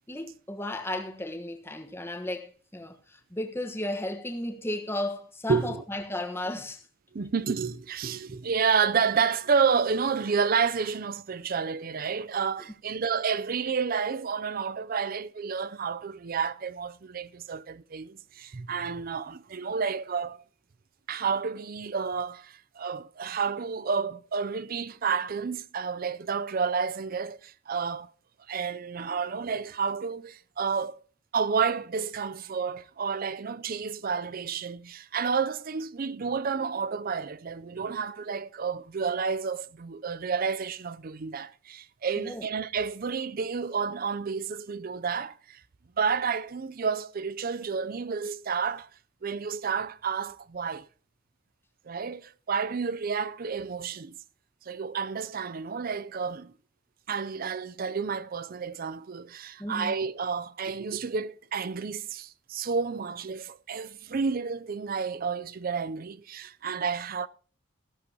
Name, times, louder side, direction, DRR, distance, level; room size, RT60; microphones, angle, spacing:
voice 1, 0.1-6.8 42.2-42.4 59.6-59.9, left 1 dB, 10° left, 1.3 m, -34 dB
voice 2, 5.5-5.8 7.1-20.4 21.1-28.1 28.5-31.0 31.3-45.6 46.0-48.9 49.2-50.9 51.9-54.2 54.7-56.5 57.1-67.3, right 5 dB, 45° right, 0.5 m, -30 dB
14.5 x 13.5 x 2.9 m
head